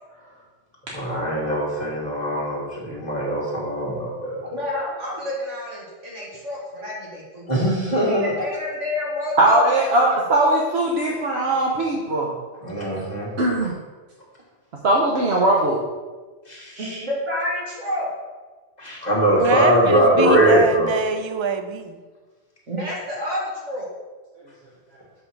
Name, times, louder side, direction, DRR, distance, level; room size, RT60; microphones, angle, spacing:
voice 1, 0.9-4.4 7.5-8.3 12.6-13.3 16.5-16.7 18.8-20.9, equal, 35° left, 2.3 m, -21 dB
voice 2, 4.4-7.6 7.9-10.2 16.8-18.1 22.7-23.9, left 1 dB, 85° right, 2.3 m, -29 dB
voice 3, 9.4-12.3 13.4-13.7 14.8-15.8 16.7-17.0, right 1 dB, 65° right, 1.2 m, -20 dB
voice 4, 19.4-22.0, right 5 dB, 40° right, 0.4 m, -24 dB
7.8 x 4.3 x 6.1 m
omnidirectional pair, 1.2 m